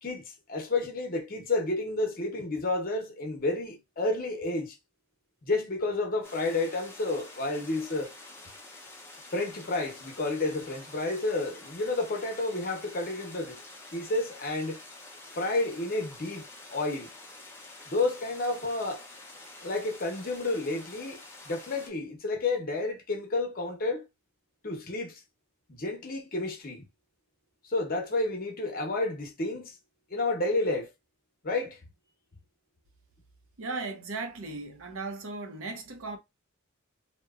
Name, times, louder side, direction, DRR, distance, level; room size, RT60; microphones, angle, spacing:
voice 1, 0.0-4.7 5.4-8.1 9.3-13.6 13.9-14.8 15.3-17.1 17.9-19.1 19.6-24.0 24.6-25.2 25.7-26.9 27.6-29.8 30.1-30.9 31.4-31.8, left 2 dB, 45° left, 0.7 m, -30 dB
sound 1, 6.2-21.9, left 2 dB, 10° left, 0.5 m, -48 dB
voice 2, 33.6-36.2, right 3 dB, 80° right, 0.7 m, -37 dB
2.9 x 2.1 x 2.3 m
head